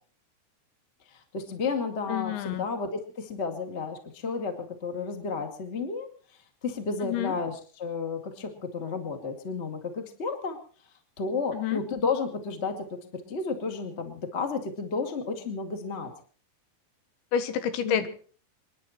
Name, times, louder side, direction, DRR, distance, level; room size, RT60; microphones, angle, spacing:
voice 1, 1.3-6.1 6.6-10.6 11.2-12.9 13.3-16.1 17.8-18.0, left 4 dB, 30° left, 6 dB, 1.2 m, -32 dB
voice 2, 2.1-2.6 7.0-7.3 11.5-11.8 17.3-18.1, left 9 dB, 85° left, 11 dB, 3.7 m, -28 dB
28.0 x 10.5 x 4.3 m, 0.44 s
omnidirectional pair, 5.1 m